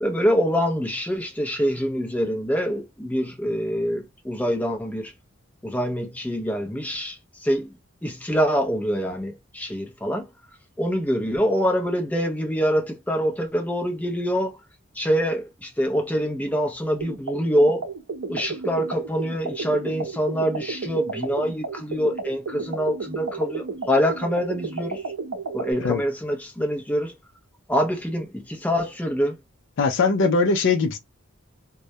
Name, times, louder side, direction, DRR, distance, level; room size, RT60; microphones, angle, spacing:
voice 1, 0.0-5.1 5.6-7.7 8.0-10.3 10.8-14.6 15.0-17.9 18.3-25.0 25.5-27.1 27.7-29.4, equal, 10° left, 0.5 m, -25 dB
sound 1, 17.0-25.7, right 4 dB, 80° right, 0.6 m, -32 dB
voice 2, 29.8-31.0, left 4 dB, 60° left, 0.4 m, -20 dB
2.2 x 2.0 x 2.7 m
head